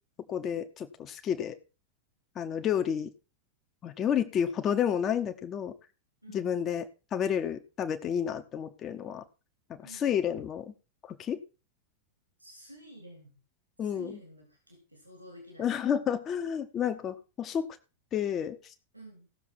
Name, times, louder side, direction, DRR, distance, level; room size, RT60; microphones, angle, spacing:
voice 1, 0.3-1.6 2.3-3.1 3.8-5.7 6.3-6.8 7.1-9.2 9.7-10.7 11.1-11.4 13.8-14.2 15.6-17.7 18.1-18.6, left 8 dB, 30° left, 7 dB, 1.3 m, -30 dB
voice 2, 6.2-6.6 9.8-10.1 12.4-13.4 13.8-16.1 18.9-19.3, right 1 dB, 85° right, 2 dB, 3.5 m, -51 dB
16.5 x 7.0 x 4.4 m, 0.32 s
figure-of-eight pair, 90°, 0 cm